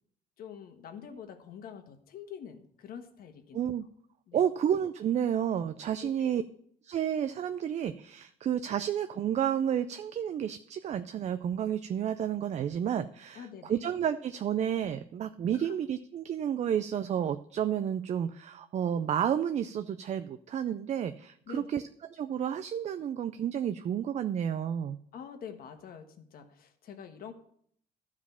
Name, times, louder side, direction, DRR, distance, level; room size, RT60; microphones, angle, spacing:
voice 1, 0.4-3.6 4.3-4.4 6.0-6.3 13.3-13.8 15.5-15.7 21.5-21.8 25.1-27.3, left 7 dB, 60° left, 6 dB, 1.3 m, -46 dB
voice 2, 3.5-3.8 4.3-6.4 6.8-21.8 22.1-25.0, right 9 dB, 40° right, 11 dB, 0.4 m, -31 dB
12.5 x 4.9 x 5.7 m, 0.66 s
cardioid pair, 110°, 17 cm